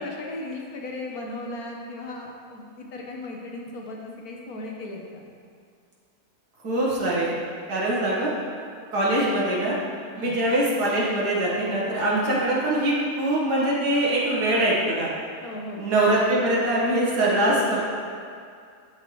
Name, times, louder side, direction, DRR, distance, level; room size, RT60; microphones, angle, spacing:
voice 1, 0.0-5.2 10.1-10.4 15.4-15.9, left 2 dB, 70° left, 0 dB, 1.5 m, -36 dB
voice 2, 6.6-7.3 7.7-8.3 8.9-9.8 10.1-15.1 15.8-17.8, right 1 dB, 85° right, -6 dB, 2.1 m, -23 dB
13.5 x 4.8 x 3.2 m, 2.3 s
omnidirectional pair, 1.7 m